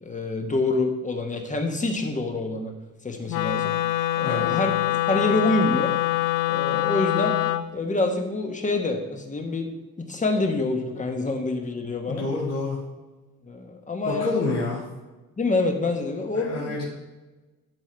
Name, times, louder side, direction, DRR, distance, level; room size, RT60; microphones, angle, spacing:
voice 1, 0.0-2.7 3.0-3.8 4.2-5.9 6.5-7.4 7.7-9.7 10.0-12.2 13.4-14.5 15.4-16.7, left 2 dB, 25° left, 4 dB, 1.2 m, -26 dB
Wind instrument woodwind instrument, 3.3-7.7, left 14 dB, 85° left, 0.5 m, -24 dB
voice 2, 4.2-4.6 12.1-12.8 14.1-14.8 16.3-16.9, left 3 dB, 55° left, -5 dB, 1.8 m, -28 dB
11.0 x 3.7 x 4.4 m, 1.1 s
cardioid pair, 90°, 30 cm